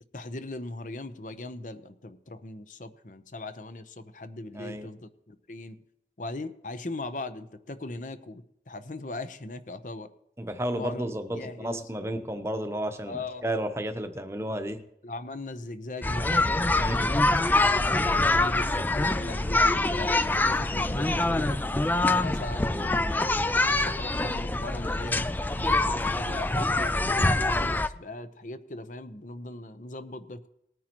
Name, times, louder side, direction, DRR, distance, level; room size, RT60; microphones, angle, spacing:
voice 1, 0.1-5.8 6.2-10.1 10.7-11.9 13.1-13.5 15.0-17.3 17.6-17.9 18.3-21.6 22.0-25.3 25.5-30.5, left 2 dB, 45° left, 11 dB, 0.8 m, -39 dB
voice 2, 4.5-4.9 10.4-14.8 16.8-17.1, right 1 dB, 15° right, 7 dB, 0.8 m, -32 dB
sound 1, 16.0-27.9, left 2 dB, 10° left, 0.3 m, -25 dB
19.5 x 9.3 x 3.0 m, 0.77 s
head